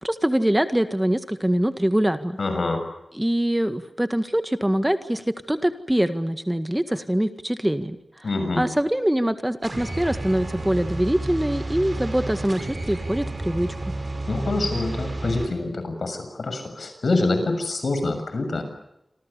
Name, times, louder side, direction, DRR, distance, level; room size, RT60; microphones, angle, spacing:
voice 1, 0.0-2.4 3.1-8.3 8.6-13.8, right 1 dB, 10° right, 9 dB, 1.8 m, -24 dB
voice 2, 2.4-2.8 8.2-8.6 14.3-18.6, left 2 dB, 75° left, 8 dB, 6.8 m, -25 dB
sound 1, 9.6-15.5, right 2 dB, 45° right, 7.7 m, -31 dB
28.5 x 26.0 x 6.9 m, 0.83 s
wide cardioid pair, 95°, 0 cm